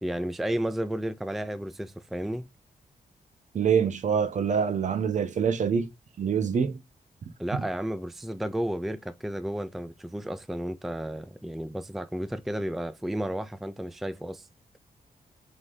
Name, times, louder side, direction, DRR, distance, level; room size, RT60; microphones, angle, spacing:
voice 1, 0.0-2.5 7.4-14.5, right 1 dB, ahead, 0.4 m, -32 dB
voice 2, 3.5-5.9 6.2-6.8, right 7 dB, 55° right, 0.8 m, -25 dB
8.0 x 3.8 x 3.9 m
wide cardioid pair, 145°, 15 cm